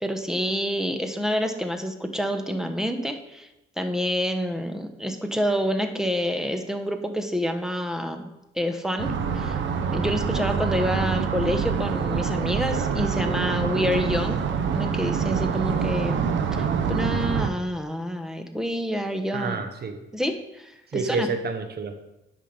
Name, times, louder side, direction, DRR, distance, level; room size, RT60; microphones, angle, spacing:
voice 1, 0.0-3.5 3.8-8.3 8.6-9.6 9.9-14.4 14.7-19.6 20.1-21.3, equal, 5° right, 6 dB, 1.1 m, -28 dB
sound 1, 9.0-17.5, right 6 dB, 70° right, 1.0 m, -26 dB
voice 2, 19.3-20.0 20.9-22.0, right 4 dB, 55° right, 7 dB, 1.3 m, -29 dB
10.0 x 5.8 x 5.2 m, 0.93 s
cardioid pair, 90°, 20 cm